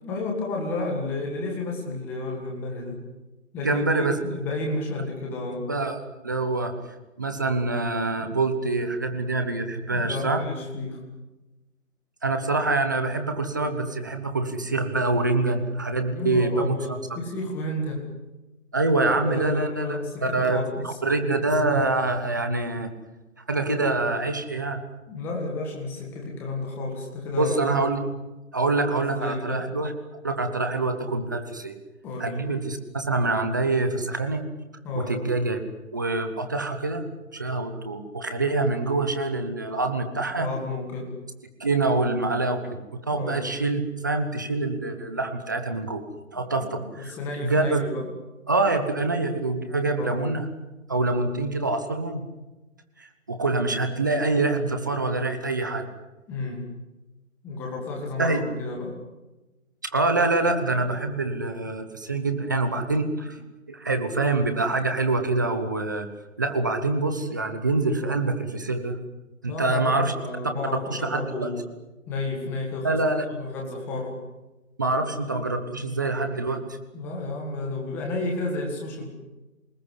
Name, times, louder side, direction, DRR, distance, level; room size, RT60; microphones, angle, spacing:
voice 1, 0.0-3.0 3.5-5.7 9.9-11.0 16.0-18.0 19.0-21.0 25.1-27.7 29.0-29.7 32.0-32.4 34.8-35.2 40.4-41.1 43.1-43.4 46.3-46.7 46.9-48.1 50.0-50.2 56.3-56.7 57.4-59.0 69.5-71.6 72.1-73.0 73.4-74.2 76.9-79.1, left 2 dB, 5° left, 0 dB, 1.8 m, -32 dB
voice 2, 3.6-4.2 5.7-6.7 7.2-10.4 12.2-16.7 18.7-22.9 23.5-24.8 27.4-28.0 28.5-29.9 30.2-31.7 32.2-34.4 35.0-35.6 35.9-37.0 37.3-40.5 41.6-42.8 43.0-46.0 46.3-47.8 48.5-50.5 50.9-52.2 53.0-55.8 58.2-58.4 59.9-63.4 63.7-66.1 66.4-69.0 69.4-70.1 70.9-71.5 72.8-73.3 74.8-76.6, right 2 dB, 15° right, 7 dB, 1.0 m, -25 dB
27.5 x 19.5 x 8.2 m, 1.1 s
hypercardioid pair, 175°, 42 cm